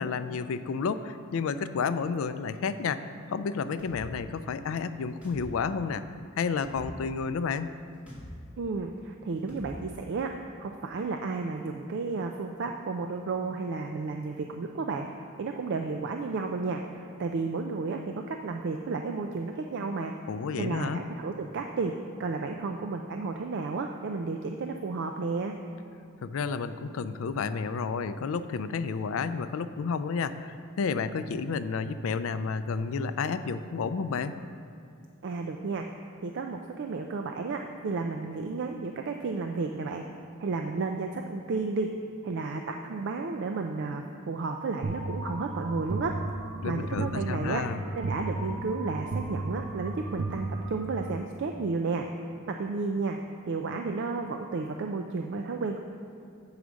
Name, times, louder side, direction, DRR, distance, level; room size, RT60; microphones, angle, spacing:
voice 1, 0.0-3.0 3.3-6.0 6.4-7.7 20.3-21.0 26.2-34.4 46.6-47.8, left 5 dB, 70° left, 12 dB, 0.4 m, -31 dB
sound 1, 3.8-4.0 5.2-5.4 6.6-6.8 8.1-8.3 9.5-9.7, left 1 dB, 5° right, 2.2 m, -45 dB
voice 2, 8.6-10.3 10.6-15.1 15.4-16.8 17.2-20.1 20.6-21.9 22.2-25.5 35.2-35.9 36.2-40.0 40.4-41.9 42.2-46.2 46.6-47.6 47.9-52.0 52.5-53.2 53.5-55.8, right 4 dB, 55° right, 4 dB, 0.4 m, -32 dB
sound 2, 44.8-51.2, right 2 dB, 85° right, 0.7 m, -34 dB
8.1 x 4.8 x 6.2 m, 2.5 s
head